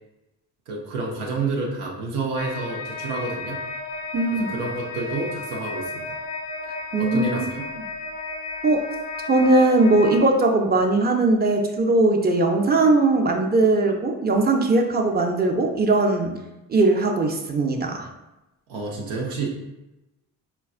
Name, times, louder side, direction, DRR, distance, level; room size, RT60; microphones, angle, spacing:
voice 1, 0.7-3.6 4.4-6.2 7.0-7.6 18.7-19.6, right 3 dB, 90° right, -2 dB, 0.6 m, -29 dB
sound 1, 2.4-10.2, left 3 dB, 30° left, 0.4 m, -33 dB
voice 2, 4.1-4.5 6.9-7.5 7.7-7.8 8.6-8.8 9.3-16.3 16.7-18.1, right 2 dB, 25° right, 2 dB, 0.5 m, -19 dB
4.2 x 2.3 x 2.4 m, 0.98 s
supercardioid pair, 55°, 43 cm